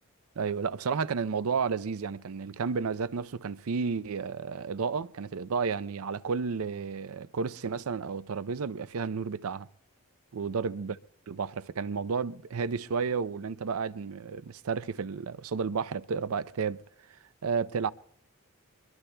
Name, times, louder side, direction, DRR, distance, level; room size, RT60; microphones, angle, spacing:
voice 1, 0.4-9.7 10.3-11.0 11.3-16.8 17.1-17.9, right 5 dB, 75° right, 0.5 m, -32 dB
24.0 x 22.0 x 2.2 m
head